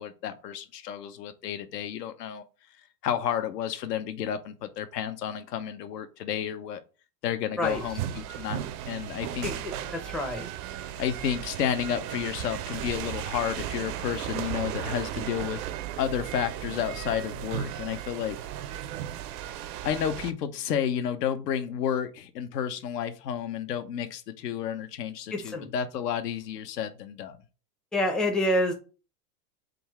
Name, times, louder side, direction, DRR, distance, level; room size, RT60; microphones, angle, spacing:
voice 1, 0.0-2.4 3.0-6.8 7.2-9.5 11.0-15.6 16.0-18.4 19.8-27.4, left 9 dB, 85° left, 0.8 m, -31 dB
sound 1, 7.6-20.3, right 11 dB, 65° right, 0.6 m, -35 dB
voice 2, 9.4-10.5 25.3-25.7 27.9-28.7, left 1 dB, ahead, 0.4 m, -27 dB
3.8 x 2.3 x 4.5 m
hypercardioid pair, 115°, 47 cm